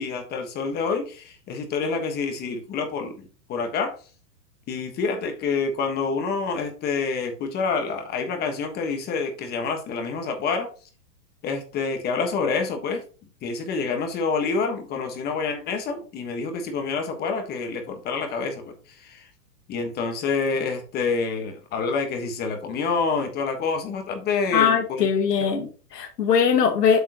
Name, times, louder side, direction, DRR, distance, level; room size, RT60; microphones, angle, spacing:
voice 1, 0.0-3.9 4.7-10.7 11.4-13.0 13.4-19.3 19.7-25.5, left 4 dB, 20° left, 5 dB, 1.3 m, -27 dB
voice 2, 24.5-27.0, left 7 dB, 85° left, 4 dB, 1.8 m, -21 dB
7.9 x 7.4 x 2.9 m, 0.37 s
hypercardioid pair, 150°, 47 cm